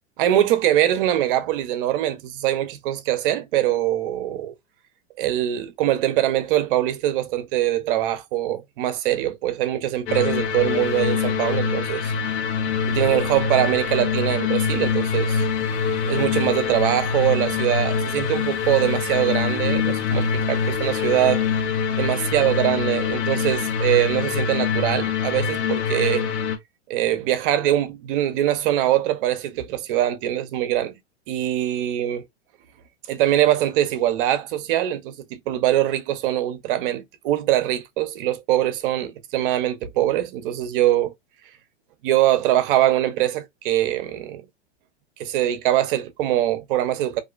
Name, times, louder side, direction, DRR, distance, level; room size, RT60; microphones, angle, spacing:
voice 1, 0.2-4.5 5.2-12.1 12.9-15.4 16.0-21.4 22.0-26.3 26.9-31.0 31.3-32.2 33.1-41.1 42.0-44.5 45.2-47.2, right 13 dB, 50° right, 0.6 m, -23 dB
sound 1, 10.1-26.6, left 6 dB, 75° left, 0.8 m, -24 dB
2.4 x 2.1 x 2.3 m
hypercardioid pair, 120°, 34 cm